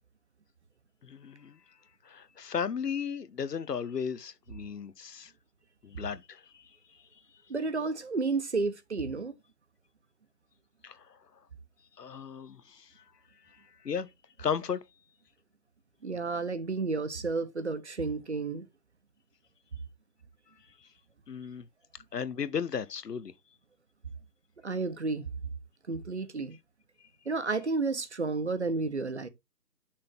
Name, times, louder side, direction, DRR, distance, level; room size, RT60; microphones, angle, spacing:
voice 1, 1.0-1.6 2.0-5.3 5.8-7.1 10.8-11.2 12.0-13.0 13.4-14.1 14.4-14.8 20.8-20.9 21.3-21.7 22.1-23.3, left 7 dB, 70° left, 0.9 m, -35 dB
voice 2, 7.5-9.3 16.0-18.7 24.6-25.3 25.9-26.6 27.3-29.3, right 3 dB, 40° right, 0.9 m, -31 dB
6.5 x 3.7 x 5.7 m
figure-of-eight pair, 170°, 50 cm